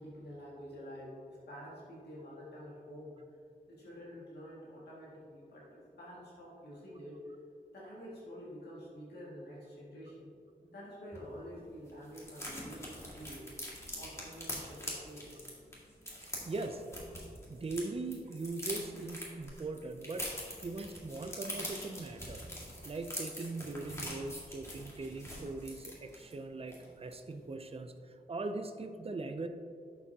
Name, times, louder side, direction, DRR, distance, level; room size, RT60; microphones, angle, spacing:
voice 1, 0.0-3.2 3.7-7.2 7.7-10.3 10.6-13.5 14.0-15.4, equal, 90° left, -7 dB, 2.1 m, -48 dB
sound 1, 11.1-11.2 11.5-11.6 11.8-17.8 18.1-26.3 26.7-26.9 27.1-27.4, equal, 15° left, 2.0 m, -44 dB
voice 2, 16.5-17.0 17.5-22.5 22.8-29.5, right 3 dB, 35° right, 7 dB, 0.5 m, -40 dB
11.0 x 6.9 x 2.8 m, 2.3 s
wide cardioid pair, 130°, 17 cm